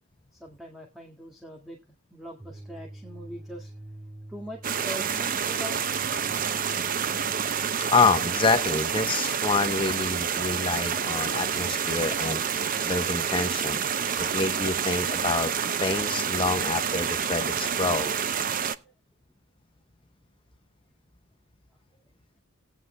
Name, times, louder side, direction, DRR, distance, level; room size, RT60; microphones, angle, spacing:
voice 1, 0.3-1.8 2.1-3.7 4.3-5.8 18.8-18.9, equal, ahead, 1 dB, 2.0 m, -42 dB
sound 1, 2.4-8.4, right 1 dB, 25° right, 2.5 m, -46 dB
sound 2, 4.6-18.8, right 7 dB, 40° right, 0.6 m, -28 dB
voice 2, 7.9-13.8 14.2-15.5 15.8-18.1, left 4 dB, 25° left, 8 dB, 0.9 m, -27 dB
18.0 x 9.6 x 2.3 m, 0.25 s
head